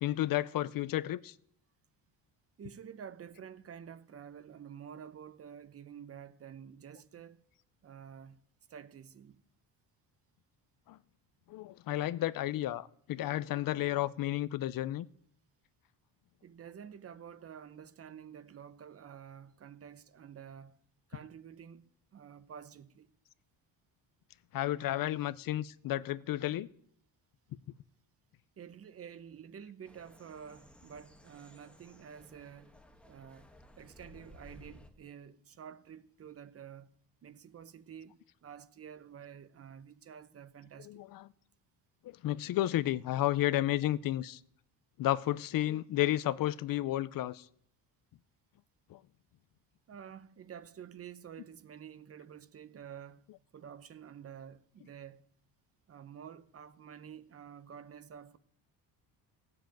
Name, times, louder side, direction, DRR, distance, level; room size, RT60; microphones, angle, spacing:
voice 1, 0.0-1.3 10.9-11.0 11.5-15.1 24.5-26.7 40.9-41.3 42.0-44.4 45.0-47.5 48.9-49.0, left 14 dB, 55° left, 0.6 m, -32 dB
voice 2, 2.6-7.4 7.8-8.4 8.7-9.4 16.4-20.8 21.1-23.1 28.6-32.7 33.1-33.5 33.8-36.9 37.2-41.0 49.9-53.2 53.5-55.2 55.9-58.4, right 8 dB, 35° right, 0.7 m, -50 dB
sound 1, 29.8-34.9, left 1 dB, 5° left, 1.3 m, -57 dB
16.0 x 7.7 x 9.0 m
cardioid pair, 150°, 41 cm